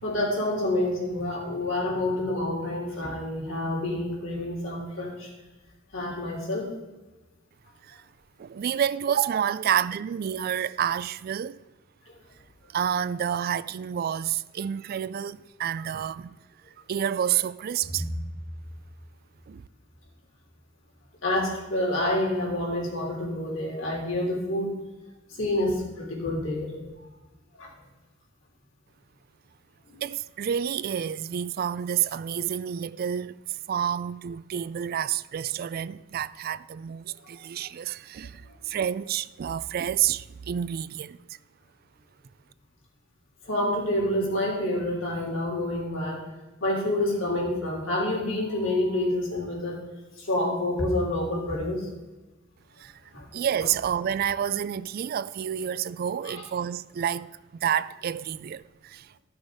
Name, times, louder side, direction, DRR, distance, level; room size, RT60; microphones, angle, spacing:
voice 1, 0.0-5.3 5.9-6.7 17.8-18.1 21.2-24.7 25.4-26.7 27.6-27.7 43.5-46.2 46.6-49.8 50.3-51.8 56.2-56.4, left 1 dB, 85° left, 3.4 m, -28 dB
voice 2, 8.4-11.6 12.7-16.4 16.9-18.1 19.5-19.6 30.0-41.2 52.8-52.9 53.3-57.3 57.6-59.2, right 9 dB, 50° right, 0.3 m, -29 dB
13.5 x 6.3 x 5.0 m
head